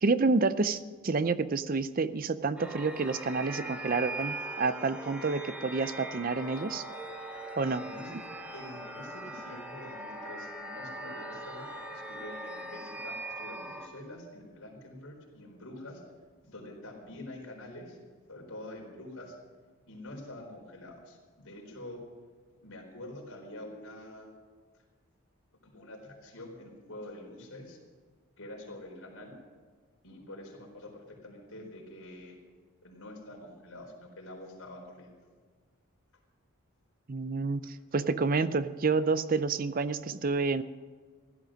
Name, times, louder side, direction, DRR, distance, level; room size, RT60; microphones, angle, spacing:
voice 1, 0.0-6.8 7.6-7.9 37.1-40.6, right 4 dB, 40° right, 14 dB, 0.5 m, -29 dB
sound 1, 2.6-13.9, right 1 dB, 5° right, 1.3 m, -41 dB
voice 2, 7.8-8.1 8.5-16.0 16.4-18.0 18.3-19.4 19.9-22.0 22.6-24.4 25.6-27.8 28.4-29.3 30.0-32.4 32.8-35.1 37.6-37.7, left 1 dB, 75° left, 0 dB, 4.4 m, -46 dB
16.5 x 12.0 x 6.2 m, 1.5 s
head